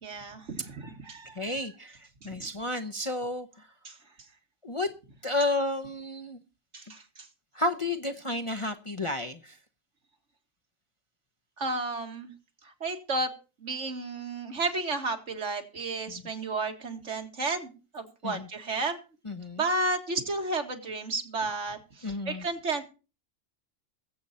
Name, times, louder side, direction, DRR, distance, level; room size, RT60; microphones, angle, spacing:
voice 1, 0.0-1.5 3.8-3.9 6.7-7.3 11.6-12.3 12.6-13.3 13.6-19.0 19.6-22.8, right 3 dB, 65° right, 4 dB, 2.2 m, -32 dB
voice 2, 1.3-3.7 4.6-4.9 5.2-6.4 7.5-9.6 16.1-16.2 18.2-18.5 19.2-19.6 22.0-22.5, left 2 dB, 30° left, 7 dB, 0.7 m, -32 dB
21.0 x 7.9 x 4.2 m, 0.34 s
omnidirectional pair, 1.3 m